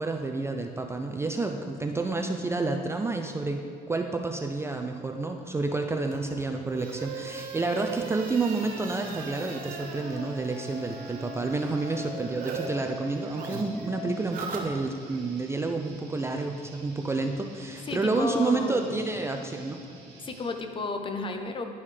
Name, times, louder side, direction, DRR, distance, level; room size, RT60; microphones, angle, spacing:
voice 1, 0.0-19.8, right 3 dB, 15° right, 4 dB, 0.4 m, -29 dB
sound 1, 6.1-12.7 12.9-15.2, right 5 dB, 55° right, 0.9 m, -39 dB
Guitar, 6.8-20.5, right 3 dB, 80° right, 1.4 m, -50 dB
Musical instrument, 9.3-14.1, left 7 dB, ahead, 1.5 m, -44 dB
voice 2, 17.9-19.0 20.2-21.7, left 3 dB, 30° left, 6 dB, 0.6 m, -32 dB
10.5 x 5.4 x 3.3 m, 2.5 s
cardioid pair, 110°, 17 cm